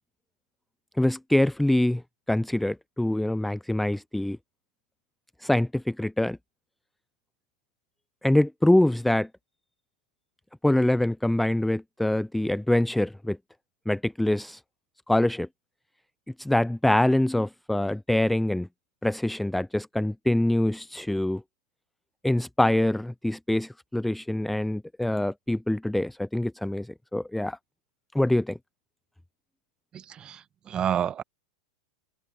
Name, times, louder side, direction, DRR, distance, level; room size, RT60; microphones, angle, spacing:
voice 1, 1.0-2.0 2.3-4.4 5.4-6.4 8.2-9.3 10.6-13.4 13.9-14.6 15.1-15.5 16.4-18.7 19.0-21.4 22.2-27.6 28.1-28.6, left 1 dB, 5° left, 0.3 m, -24 dB
voice 2, 29.9-31.2, right 9 dB, 25° right, 1.5 m, -30 dB
figure-of-eight pair, 95°, 3 cm